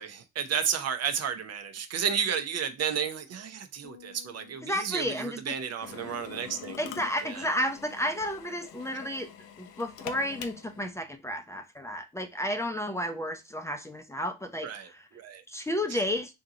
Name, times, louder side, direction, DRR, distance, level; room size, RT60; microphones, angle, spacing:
voice 1, 0.0-6.8 7.2-7.4 14.6-14.9 15.1-15.4 15.9-16.0, right 7 dB, 55° right, 0.7 m, -32 dB
sound 1, 3.8-7.2, left 13 dB, 55° left, 0.9 m, -57 dB
voice 2, 4.6-5.6 6.8-9.3 9.6-15.1 15.5-16.3, equal, 10° left, 0.5 m, -32 dB
Drill, 5.8-10.9, left 9 dB, 85° left, 0.6 m, -45 dB
3.7 x 2.8 x 3.7 m
cardioid pair, 90°, 30 cm